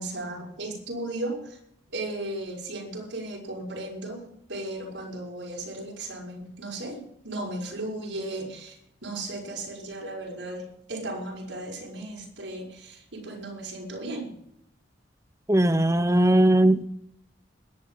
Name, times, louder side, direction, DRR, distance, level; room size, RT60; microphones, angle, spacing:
voice 1, 0.0-1.6 1.9-14.3, right 2 dB, 85° right, -2 dB, 6.2 m, -36 dB
voice 2, 15.5-16.9, right 1 dB, 15° right, 12 dB, 0.9 m, -19 dB
21.5 x 11.0 x 3.9 m, 0.73 s
head